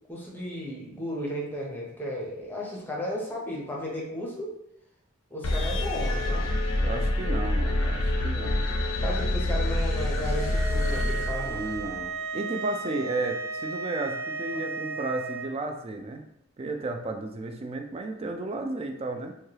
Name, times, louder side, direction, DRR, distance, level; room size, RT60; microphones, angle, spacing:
voice 1, 0.1-4.5 5.3-6.5 9.0-11.6 14.5-14.6, equal, 10° left, -3 dB, 0.7 m, -34 dB
sound 1, 5.4-12.0, left 1 dB, 75° left, 0.5 m, -27 dB
voice 2, 6.8-8.6 11.5-16.2 16.6-19.3, right 2 dB, 30° right, 4 dB, 0.3 m, -33 dB
sound 2, 10.3-15.5, right 4 dB, 85° right, 0.5 m, -34 dB
3.1 x 2.2 x 2.8 m, 0.79 s
head